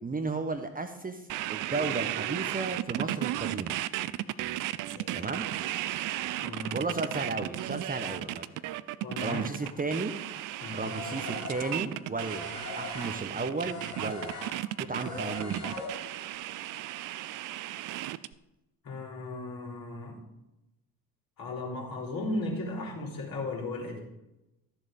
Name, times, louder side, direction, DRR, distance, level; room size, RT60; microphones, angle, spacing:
voice 1, 0.0-3.8 5.1-5.5 6.7-8.5 9.2-10.1 10.7-14.4 14.9-15.6, right 3 dB, 20° right, 7 dB, 1.1 m, -34 dB
sound 1, 1.3-18.3, right 14 dB, 45° right, 0.6 m, -35 dB
voice 2, 4.9-5.3 6.4-6.8 9.0-9.7 10.6-10.9 18.8-20.2 21.4-24.0, left 2 dB, 45° left, -1 dB, 4.0 m, -36 dB
sound 2, 10.8-16.3, left 2 dB, 90° left, 2.9 m, -40 dB
13.5 x 7.3 x 5.2 m, 0.92 s
figure-of-eight pair, 50°, 46 cm